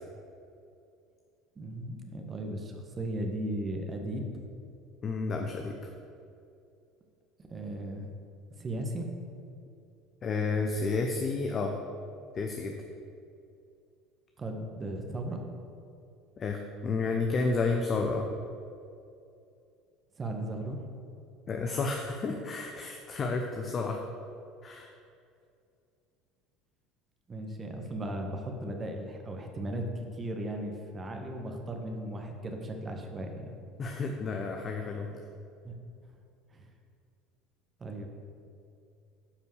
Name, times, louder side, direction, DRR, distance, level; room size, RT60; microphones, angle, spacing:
voice 1, 1.5-4.3 7.5-8.0 8.6-9.1 14.4-15.4 20.2-20.8 27.3-33.5 35.6-35.7 36.5-36.7 37.8-38.1, right 1 dB, 30° right, 3 dB, 1.6 m, -36 dB
voice 2, 5.0-5.8 10.2-11.7 12.3-12.8 16.4-18.3 21.5-24.0 24.6-24.9 33.8-35.2, left 4 dB, 40° left, 3 dB, 0.9 m, -31 dB
10.0 x 5.4 x 6.3 m, 2.5 s
hypercardioid pair, 70°, 0 cm